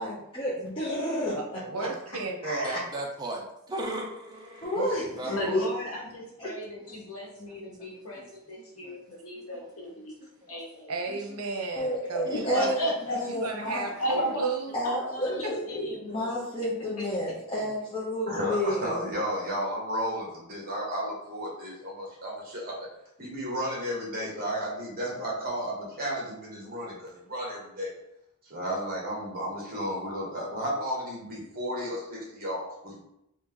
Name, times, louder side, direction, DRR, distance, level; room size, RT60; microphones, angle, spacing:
voice 1, 0.0-1.6 2.5-2.7 4.6-5.6 6.4-6.5 11.8-13.9 14.7-19.1, equal, 25° left, -9 dB, 0.7 m, -31 dB
voice 2, 1.3-2.8 4.8-4.9 10.9-12.8 13.2-14.8, right 3 dB, 85° right, 3 dB, 0.7 m, -33 dB
voice 3, 2.6-4.7 5.2-5.6 7.4-7.5 8.1-8.3 8.6-9.0 9.5-9.7 12.3-12.4 15.8-15.9, right 1 dB, 20° right, -1 dB, 0.5 m, -37 dB
voice 4, 5.3-10.1 10.5-10.9 12.3-13.2 14.0-14.4 14.8-16.3, equal, 75° left, -3 dB, 1.2 m, -34 dB
voice 5, 18.3-22.7 23.2-27.9 28.4-33.0, equal, 40° right, -3 dB, 1.3 m, -33 dB
3.1 x 2.8 x 3.7 m, 0.81 s
head